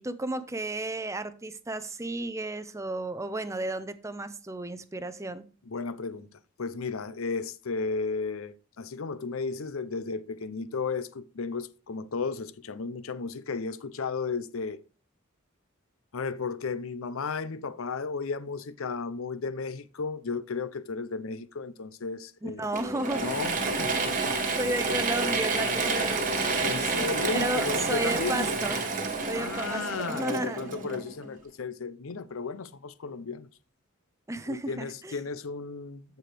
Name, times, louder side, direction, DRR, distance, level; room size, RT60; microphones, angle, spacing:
voice 1, 0.0-5.4 22.4-23.2 24.6-27.0 27.3-28.9 29.3-30.6 34.3-35.2, right 2 dB, 15° right, 0.6 m, -33 dB
voice 2, 5.7-6.3 6.6-14.8 16.1-22.7 23.2-24.3 26.6-28.5 29.3-33.5 34.5-36.2, left 4 dB, 75° left, 0.6 m, -34 dB
Mechanisms / Drill, 22.7-31.3, right 3 dB, 40° right, 1.3 m, -29 dB
13.5 x 4.6 x 3.3 m
head